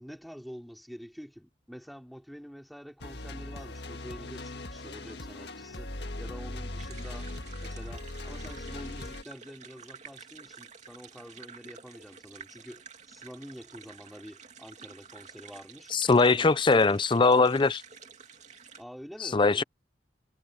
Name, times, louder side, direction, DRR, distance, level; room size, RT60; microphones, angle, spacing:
voice 1, 0.0-7.3 7.6-15.9 16.2-16.6 18.8-19.6, equal, ahead, 3.7 m, -47 dB
sound 1, 3.0-9.2, left 1 dB, 70° left, 1.8 m, -39 dB
sound 2, 6.8-18.8, right 6 dB, 40° right, 2.6 m, -50 dB
voice 2, 15.9-17.8 19.2-19.6, left 3 dB, 30° left, 0.5 m, -21 dB
head